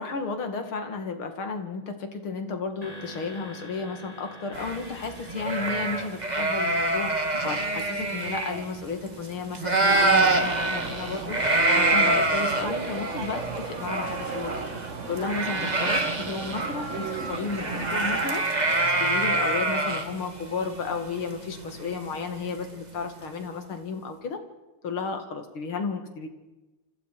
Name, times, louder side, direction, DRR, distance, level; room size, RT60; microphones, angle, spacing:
voice 1, 0.0-11.4 11.7-14.7 15.1-18.4 19.0-24.4 24.8-26.3, left 4 dB, 75° left, 7 dB, 3.2 m, -33 dB
sound 1, 2.8-9.2, equal, 15° left, 3.2 m, -47 dB
sound 2, 4.5-9.3 9.5-22.5, right 2 dB, 20° right, 2.0 m, -26 dB
sound 3, 9.9-18.3, right 4 dB, 40° right, 1.7 m, -37 dB
28.5 x 25.5 x 4.9 m, 1.1 s
omnidirectional pair, 2.3 m